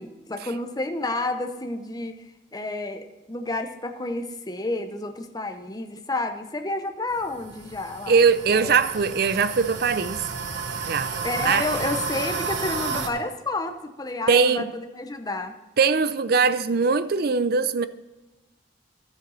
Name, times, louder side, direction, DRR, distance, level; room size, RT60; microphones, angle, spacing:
voice 1, 0.0-2.2 2.5-8.2 8.5-8.8 11.2-15.6, left 2 dB, 20° left, 0.8 m, -30 dB
sound 1, 7.1-13.1, right 5 dB, 90° right, 1.0 m, -32 dB
voice 2, 8.1-10.2 10.8-11.1 11.4-11.7 14.3-14.7 15.8-17.9, right 5 dB, 55° right, 0.5 m, -21 dB
12.5 x 7.5 x 4.1 m
head